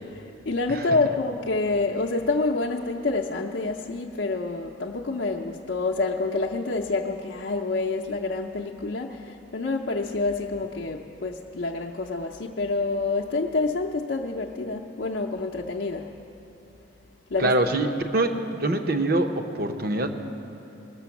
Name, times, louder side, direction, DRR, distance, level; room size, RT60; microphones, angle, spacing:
voice 1, 0.1-16.1 17.3-17.5, left 3 dB, 65° left, -1 dB, 0.5 m, -27 dB
voice 2, 17.4-20.1, right 2 dB, 50° right, 5 dB, 0.7 m, -24 dB
19.0 x 6.8 x 7.1 m, 2.8 s
head